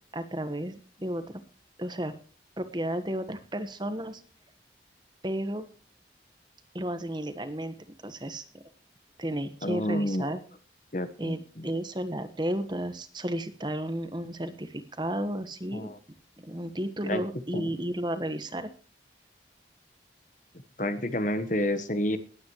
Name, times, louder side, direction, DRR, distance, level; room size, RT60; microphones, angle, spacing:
voice 1, 0.1-1.4 1.8-2.1 2.6-4.2 5.2-5.6 6.7-7.8 8.0-8.4 9.2-10.4 11.2-11.4 11.6-15.9 16.4-18.7, right 1 dB, 25° right, 10 dB, 1.3 m, -33 dB
voice 2, 9.6-10.3 10.9-11.7 15.7-16.0 17.1-17.2 17.5-17.7 20.8-22.2, left 1 dB, 45° left, 11 dB, 1.2 m, -29 dB
20.0 x 9.3 x 3.1 m, 0.40 s
head